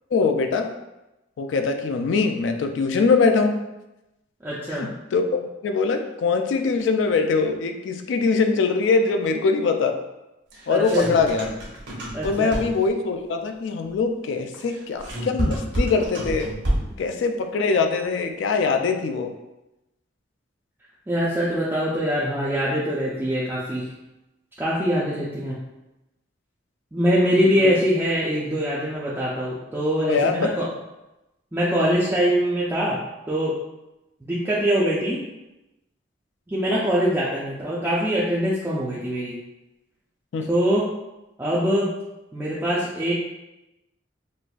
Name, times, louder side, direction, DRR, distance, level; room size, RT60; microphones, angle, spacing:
voice 1, 0.1-0.7 1.4-3.6 4.7-10.0 10.7-11.5 12.2-16.5 17.0-19.3 27.4-27.7 30.1-30.7 40.3-40.5, left 4 dB, 70° left, 6 dB, 0.3 m, -22 dB
voice 2, 4.4-4.9 10.7-11.2 12.1-12.5 21.1-23.9 24.6-25.6 26.9-30.7 31.5-33.0 33.3-33.5 34.2-35.2 36.5-39.4 40.5-40.9 41.4-41.9 42.3-43.1, equal, 10° right, -7 dB, 0.4 m, -23 dB
sound 1, 10.5-13.0 14.6-17.1, right 1 dB, 65° right, 0.9 m, -28 dB
4.1 x 2.4 x 2.3 m, 0.96 s
head